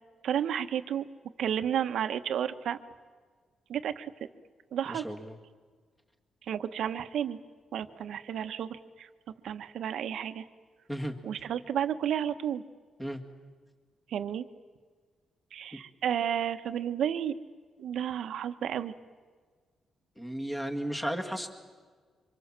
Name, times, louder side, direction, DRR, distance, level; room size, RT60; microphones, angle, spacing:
voice 1, 0.2-1.1 1.4-2.8 3.7-4.1 4.7-5.0 6.5-7.4 7.7-9.1 9.4-10.4 11.2-12.6 14.1-14.5 15.5-17.4 17.8-18.9, right 9 dB, 65° right, 10 dB, 1.1 m, -32 dB
voice 2, 4.9-5.4 10.9-11.1 13.0-13.2 20.2-21.5, equal, 5° left, 4 dB, 2.0 m, -34 dB
28.0 x 25.0 x 7.5 m, 1.5 s
wide cardioid pair, 170°, 0 cm